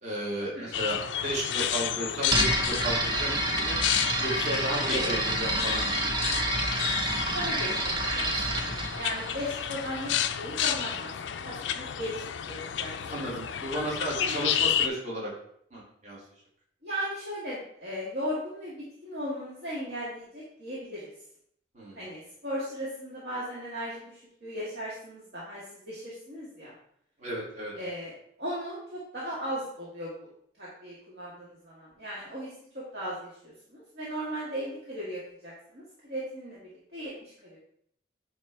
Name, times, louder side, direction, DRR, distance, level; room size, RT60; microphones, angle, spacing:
voice 1, 0.0-3.8 4.2-6.5 13.1-15.3 15.7-16.2 21.7-22.0 27.2-27.7, right 1 dB, 40° right, -4 dB, 2.2 m, -34 dB
sound 1, 0.7-14.9, left 9 dB, 90° left, 0.4 m, -31 dB
sound 2, 2.3-10.1, right 1 dB, 25° right, 0.9 m, -29 dB
voice 2, 4.9-5.3 7.3-8.5 8.8-11.1 11.4-12.2 12.5-12.9 13.2-13.3 14.1-14.5 16.8-18.8 19.0-21.0 21.9-26.7 27.8-28.1 28.4-30.3 30.6-36.6 36.9-37.6, equal, 60° right, -7 dB, 2.0 m, -37 dB
9.4 x 3.3 x 4.6 m, 0.68 s
head